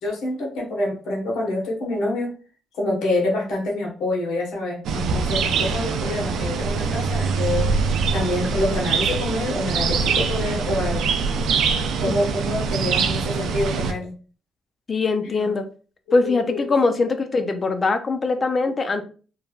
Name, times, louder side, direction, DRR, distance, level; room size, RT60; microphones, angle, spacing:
voice 1, 0.0-2.3 2.8-7.7 8.1-11.0 12.0-14.1 15.3-15.4 16.1-16.7, left 2 dB, 70° left, -2 dB, 1.1 m, -26 dB
sound 1, 4.8-13.9, right 5 dB, 75° right, 0.4 m, -23 dB
voice 2, 14.9-15.7 16.1-19.0, left 3 dB, 40° left, 7 dB, 0.5 m, -22 dB
3.2 x 2.2 x 2.4 m, 0.38 s
supercardioid pair, 65°, 0 cm